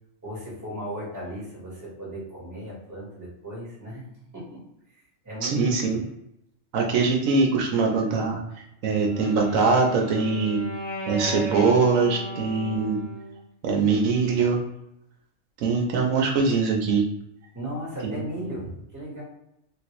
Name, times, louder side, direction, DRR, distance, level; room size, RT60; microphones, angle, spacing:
voice 1, 0.2-4.6 5.2-6.0 17.5-19.2, equal, 15° right, -6 dB, 1.2 m, -36 dB
voice 2, 5.4-6.0 6.7-8.4 8.8-10.6 11.1-13.0 13.6-14.6 15.6-17.1 18.0-18.1, right 4 dB, 80° right, 1 dB, 1.1 m, -22 dB
Wind instrument woodwind instrument, 8.8-13.4, equal, 75° left, 1.3 m, -35 dB
3.2 x 2.5 x 3.0 m, 0.81 s
omnidirectional pair, 1.4 m